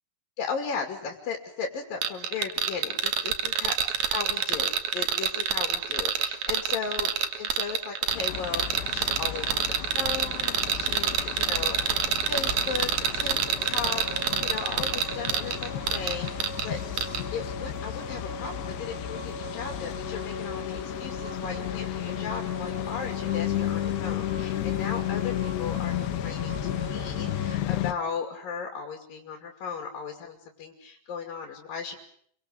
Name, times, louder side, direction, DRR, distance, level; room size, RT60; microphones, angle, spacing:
voice 1, 0.4-3.8 4.1-7.1 7.4-11.8 12.3-13.4 13.6-16.8 17.3-32.0, left 5 dB, 60° left, 3 dB, 4.1 m, -36 dB
sound 1, 2.0-16.7 17.0-17.2, right 8 dB, 55° right, 2.3 m, -27 dB
sound 2, 8.1-27.9, left 13 dB, 80° left, 3.2 m, -33 dB
sound 3, 13.6-27.6, right 3 dB, 75° right, 3.9 m, -41 dB
28.5 x 24.0 x 6.7 m, 0.66 s
omnidirectional pair, 4.8 m